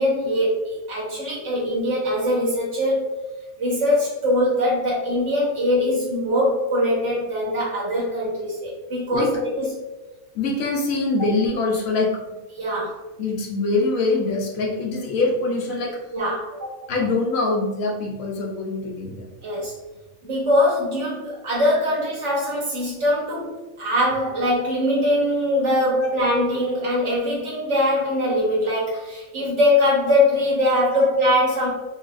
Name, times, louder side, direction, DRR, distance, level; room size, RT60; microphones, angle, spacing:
voice 1, 0.0-3.1 3.6-9.7 12.5-13.0 16.1-16.7 19.4-19.7 20.2-31.7, left 1 dB, 60° right, -5 dB, 1.6 m, -22 dB
voice 2, 9.1-9.5 10.3-12.2 13.2-16.0 16.9-19.3 21.9-22.0 26.0-26.1 30.9-31.1, left 3 dB, 75° left, 0 dB, 1.1 m, -24 dB
3.9 x 2.9 x 2.5 m, 1.1 s
omnidirectional pair, 1.4 m